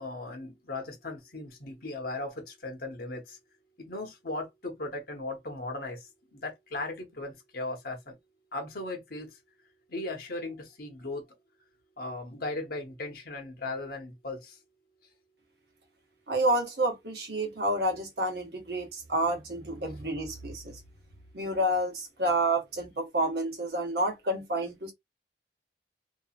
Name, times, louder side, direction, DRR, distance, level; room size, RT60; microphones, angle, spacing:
voice 1, 0.0-3.4 3.8-8.1 8.5-9.3 9.9-11.2 12.0-14.6, left 2 dB, 55° left, 0.9 m, -37 dB
voice 2, 16.3-20.8 21.3-24.9, right 1 dB, 60° right, 1.0 m, -29 dB
2.8 x 2.4 x 2.4 m
head